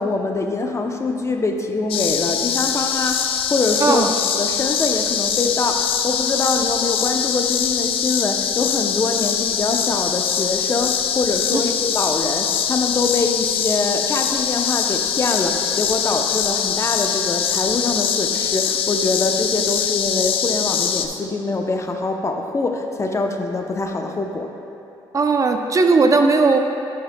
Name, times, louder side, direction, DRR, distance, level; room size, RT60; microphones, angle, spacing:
voice 1, 0.0-4.1 4.4-24.5, left 3 dB, 30° left, 4 dB, 0.6 m, -24 dB
sound 1, 1.9-21.1, left 8 dB, 75° left, 0.4 m, -22 dB
voice 2, 3.8-4.1 25.1-26.6, right 3 dB, 35° right, 5 dB, 0.5 m, -16 dB
11.5 x 6.3 x 2.2 m, 2.7 s
cardioid pair, 80°, 10 cm